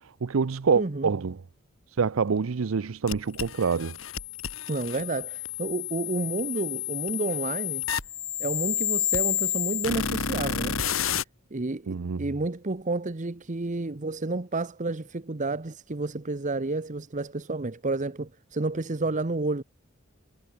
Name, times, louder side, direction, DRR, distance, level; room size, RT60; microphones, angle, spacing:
voice 1, 0.2-1.4 2.0-4.0 11.9-12.2, right 5 dB, 85° right, 0.6 m, -26 dB
voice 2, 0.8-1.1 4.7-7.8 8.4-10.8 11.5-19.6, right 2 dB, 35° right, 0.9 m, -30 dB
sound 1, 3.1-11.2, left 10 dB, 75° left, 2.3 m, -30 dB
head